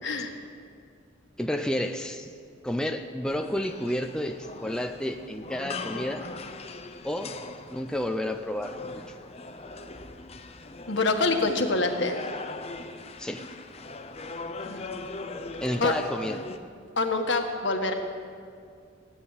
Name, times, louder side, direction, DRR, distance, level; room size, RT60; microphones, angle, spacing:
voice 1, 0.0-0.3 10.9-12.2 14.6-14.9 15.8-16.0 17.0-17.9, left 3 dB, 60° left, 4 dB, 1.6 m, -26 dB
voice 2, 1.4-2.3 2.6-6.3 7.0-7.4 7.7-9.0 13.2-13.5 15.6-16.4, left 1 dB, 5° left, 5 dB, 0.5 m, -31 dB
sound 1, 3.2-16.6, left 3 dB, 30° left, 0.8 m, -40 dB
16.5 x 9.0 x 9.0 m, 2.2 s
head